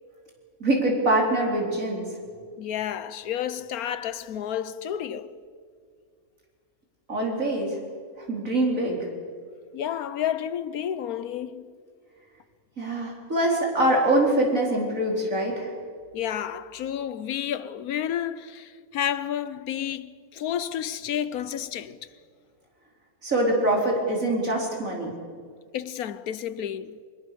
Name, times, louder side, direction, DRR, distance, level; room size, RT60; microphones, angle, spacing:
voice 1, 0.6-2.1 7.1-7.8 8.2-9.1 12.8-15.7 23.2-25.1, right 1 dB, 60° right, 4.6 m, -24 dB
voice 2, 2.6-5.4 9.7-11.7 16.1-22.0 25.7-27.0, left 10 dB, 75° left, 1.2 m, -31 dB
24.0 x 21.5 x 6.8 m
omnidirectional pair, 1.6 m